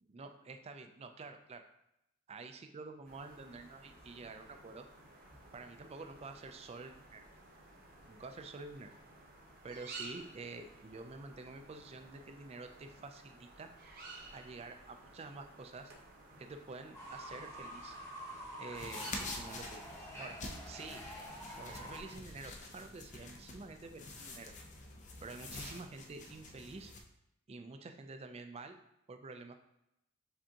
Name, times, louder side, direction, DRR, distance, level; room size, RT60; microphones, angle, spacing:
voice 1, 0.1-1.6 2.3-4.9 5.5-7.3 8.0-8.9 9.6-13.7 14.3-15.9 16.4-18.0 18.6-20.4 20.7-21.0 21.5-24.5 25.2-26.9 27.5-28.8 29.1-29.5, right 3 dB, 30° right, 7 dB, 0.4 m, -48 dB
sound 1, 3.0-22.1, right 2 dB, 45° right, 0.8 m, -55 dB
Fowl / Bird, 16.9-22.0, equal, 15° left, 0.9 m, -47 dB
sound 2, 18.7-27.0, left 2 dB, 35° left, 0.5 m, -47 dB
5.0 x 3.5 x 2.8 m, 0.82 s
head